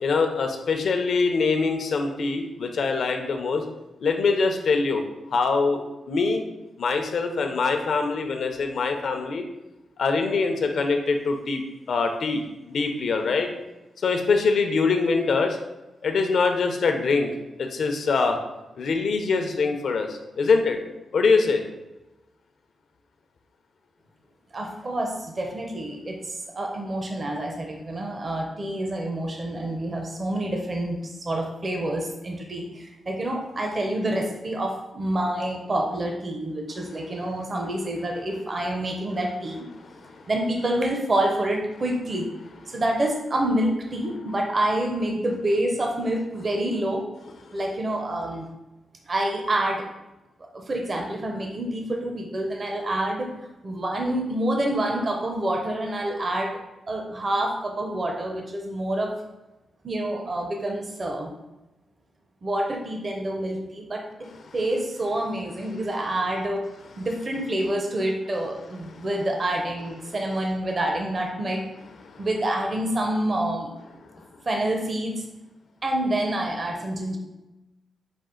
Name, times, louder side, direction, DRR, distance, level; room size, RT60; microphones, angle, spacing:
voice 1, 0.0-3.6 4.0-5.0 5.3-6.4 6.8-9.4 10.0-13.5 14.0-15.6 16.0-17.3 17.6-18.4 18.8-20.8 21.1-21.6 64.5-64.6 72.1-72.3, left 4 dB, 70° left, 5 dB, 0.6 m, -23 dB
voice 2, 24.5-39.6 40.3-42.3 42.7-47.0 47.5-48.5 49.1-49.8 50.5-53.3 53.6-56.6 56.9-59.1 59.8-61.3 62.4-66.6 67.0-71.7 72.2-73.7 74.5-75.2 75.8-77.2, right 1 dB, 40° right, 1 dB, 0.6 m, -27 dB
5.2 x 2.5 x 3.7 m, 1.0 s
cardioid pair, 90°, 0 cm